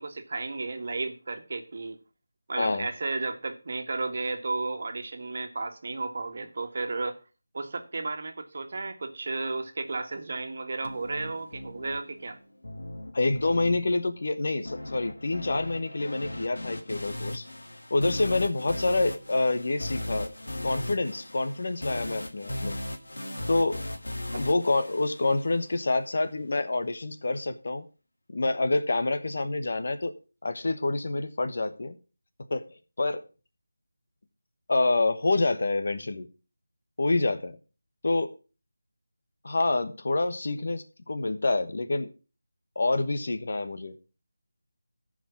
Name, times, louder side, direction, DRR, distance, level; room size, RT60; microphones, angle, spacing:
voice 1, 0.0-2.0 2.5-7.2 7.5-12.4 24.3-24.4, right 3 dB, 50° right, 1.6 m, -33 dB
voice 2, 2.6-2.9 13.1-17.5 17.9-20.3 20.6-22.8 23.5-23.8 24.3-27.8 28.3-30.1 30.4-32.0 32.5-32.7 33.0-33.2 34.7-36.3 37.0-37.6 38.0-38.3 39.4-42.1 42.7-43.9, left 2 dB, 55° left, 1.2 m, -27 dB
sound 1, 10.8-25.8, left 1 dB, 80° left, 1.9 m, -38 dB
14.0 x 5.0 x 5.9 m
figure-of-eight pair, 165°, 0 cm